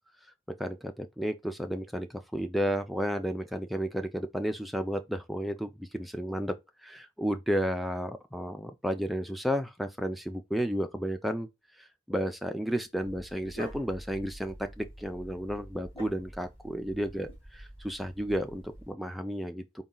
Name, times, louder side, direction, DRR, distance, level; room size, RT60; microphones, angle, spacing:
voice 1, 0.5-6.6 6.8-11.5 11.8-19.6, equal, ahead, 0.3 m, -32 dB
Dog, 13.0-18.9, right 1 dB, 25° left, 2.4 m, -47 dB
4.1 x 2.3 x 3.7 m
head